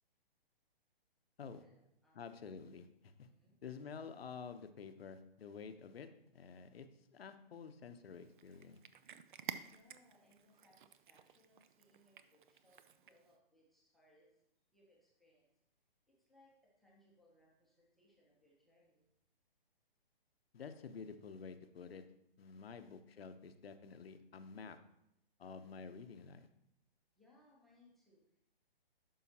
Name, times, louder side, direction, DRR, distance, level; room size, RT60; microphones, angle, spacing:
voice 1, 1.6-2.4 3.3-3.5 9.6-14.4 14.7-15.5 16.1-19.1 27.1-28.4, left 1 dB, ahead, -4 dB, 0.8 m, -70 dB
voice 2, 2.1-3.3 3.6-6.9 7.1-8.8 20.5-22.0 22.4-24.8 25.4-26.5, left 5 dB, 80° left, 9 dB, 0.8 m, -50 dB
Cat, 8.2-13.4, right 8 dB, 55° right, 0.5 m, -52 dB
11.0 x 5.7 x 2.8 m, 0.81 s
hypercardioid pair, 160°, 30 cm